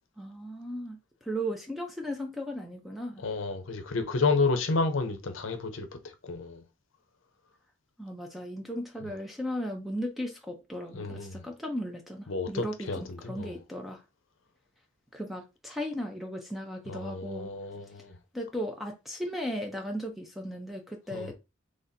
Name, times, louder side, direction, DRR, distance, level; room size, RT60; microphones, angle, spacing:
voice 1, 0.2-3.2 8.0-14.0 15.1-17.5 18.3-21.3, equal, ahead, 0.5 m, -36 dB
voice 2, 3.2-6.6 10.9-11.4 12.3-13.6 16.9-18.2 21.1-21.3, left 3 dB, 75° left, 0.6 m, -31 dB
4.1 x 3.2 x 2.6 m
head